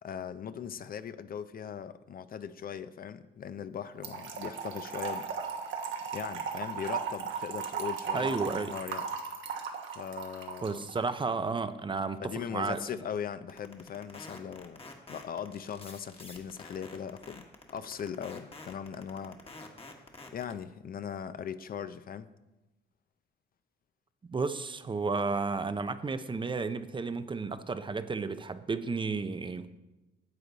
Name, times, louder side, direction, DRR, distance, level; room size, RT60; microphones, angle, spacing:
voice 1, 0.0-5.3 6.1-9.1 9.9-10.8 12.2-14.8 15.1-19.4 20.3-22.3, left 8 dB, 45° left, 0.5 m, -39 dB
Trickle dribble / Fill (with liquid), 4.0-11.1, right 6 dB, 70° right, 1.2 m, -36 dB
voice 2, 8.1-8.7 10.6-12.2 12.5-12.8 24.3-29.7, right 4 dB, 25° right, 0.5 m, -32 dB
sound 1, 13.5-20.5, left 3 dB, 30° left, 1.3 m, -47 dB
9.8 x 7.4 x 4.0 m
cardioid pair, 90°, 20 cm